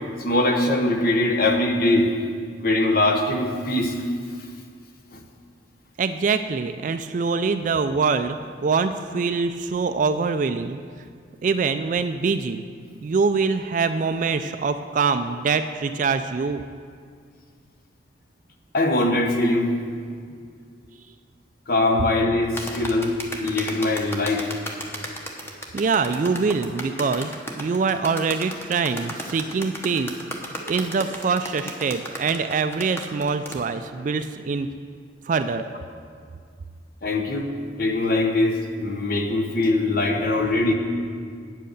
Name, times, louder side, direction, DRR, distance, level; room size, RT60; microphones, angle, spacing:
voice 1, 0.2-2.1 2.6-4.0 5.1-5.2 18.7-19.7 21.7-23.1 23.4-24.5 37.0-37.5 37.8-40.7, left 2 dB, 55° left, 3 dB, 1.1 m, -22 dB
voice 2, 6.0-10.8 11.4-12.6 13.0-16.6 25.7-27.3 27.6-30.1 30.7-34.7 35.3-35.6, right 4 dB, 45° right, 9 dB, 0.3 m, -24 dB
sound 1, 22.6-33.6, equal, 15° left, 1.0 m, -34 dB
9.1 x 7.7 x 6.7 m, 2.1 s
head